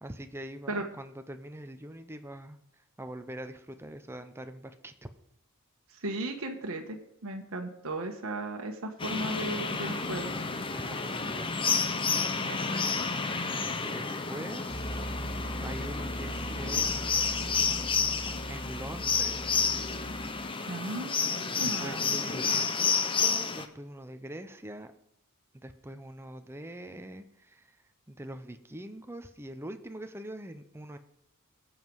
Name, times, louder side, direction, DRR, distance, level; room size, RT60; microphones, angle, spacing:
voice 1, 0.0-2.6 3.0-5.1 10.7-11.5 13.8-15.2 15.6-17.8 18.5-19.6 21.5-22.9 23.2-24.9 25.5-27.8 28.1-31.0, right 1 dB, 10° right, 8 dB, 0.7 m, -43 dB
voice 2, 6.0-10.3 12.4-12.7 20.7-22.0, right 2 dB, 65° right, 2 dB, 1.3 m, -36 dB
sound 1, 9.0-23.7, left 5 dB, 25° left, 0.8 m, -30 dB
Piano, 14.7-20.3, right 1 dB, 30° right, 3.3 m, -40 dB
20.0 x 7.6 x 4.7 m, 0.78 s
head